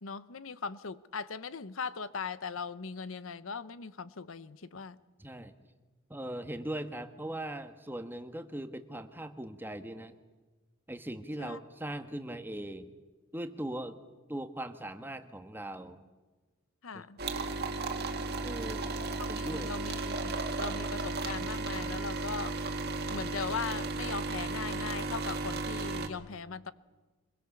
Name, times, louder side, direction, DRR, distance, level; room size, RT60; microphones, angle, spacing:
voice 1, 0.0-5.0 11.4-11.6 16.8-17.2 19.2-22.5 23.1-26.7, left 5 dB, 80° left, 15 dB, 0.8 m, -39 dB
voice 2, 5.2-5.5 6.1-10.1 10.9-12.9 13.3-14.0 14.3-16.0 16.9-17.0 18.4-18.9 19.3-19.9, right 1 dB, 10° right, 8 dB, 1.3 m, -40 dB
sound 1, 17.2-26.1, right 3 dB, 50° right, 2.1 m, -34 dB
24.5 x 22.0 x 7.2 m, 1.2 s
head